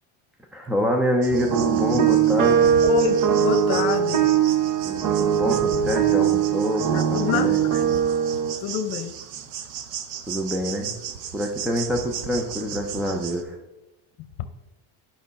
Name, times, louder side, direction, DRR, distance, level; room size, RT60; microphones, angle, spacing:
voice 1, 0.5-2.8 4.8-7.6 10.3-10.9 11.3-13.6, equal, ahead, 2 dB, 0.3 m, -26 dB
sound 1, 1.2-13.4, right 8 dB, 75° right, 0.9 m, -36 dB
sound 2, 1.3-8.5, right 9 dB, 40° right, 0.7 m, -21 dB
voice 2, 2.8-4.3 6.9-7.8 8.6-9.1, left 9 dB, 65° left, 10 dB, 0.8 m, -27 dB
9.0 x 5.6 x 4.0 m, 1.0 s
cardioid pair, 145°, 48 cm